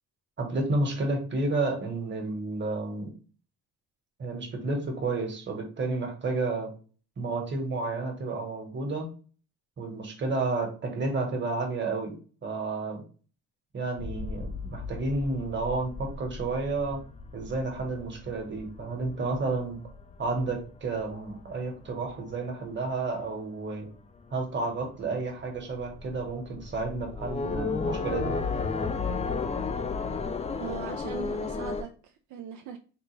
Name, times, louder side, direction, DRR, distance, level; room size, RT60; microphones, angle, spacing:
voice 1, 0.4-3.1 4.2-6.7 7.2-9.1 9.8-12.2 12.4-13.0 13.7-17.0 17.3-19.8 20.2-23.9 24.3-28.4, right 3 dB, 40° right, 1.2 m, -31 dB
sound 1, 14.0-22.9 23.2-23.9 24.2-24.3 24.7-31.8, left 4 dB, 20° left, 0.4 m, -34 dB
voice 2, 30.6-32.8, right 8 dB, 75° right, 0.4 m, -40 dB
3.9 x 2.2 x 3.1 m
cardioid pair, 90°, 30 cm